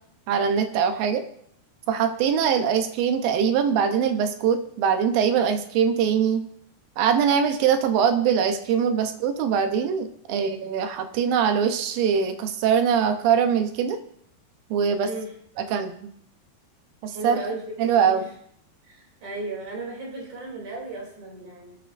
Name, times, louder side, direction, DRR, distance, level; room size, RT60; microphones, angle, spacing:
voice 1, 0.3-1.2 1.9-6.4 7.0-14.0 14.7-15.1 15.6-15.9 17.0-17.4 17.8-18.3, right 7 dB, 75° right, 7 dB, 2.4 m, -22 dB
voice 2, 14.9-15.9 17.1-17.8 18.0-18.3 18.8-21.8, right 2 dB, 50° right, -2 dB, 4.3 m, -36 dB
20.5 x 9.3 x 2.6 m, 0.65 s
omnidirectional pair, 4.6 m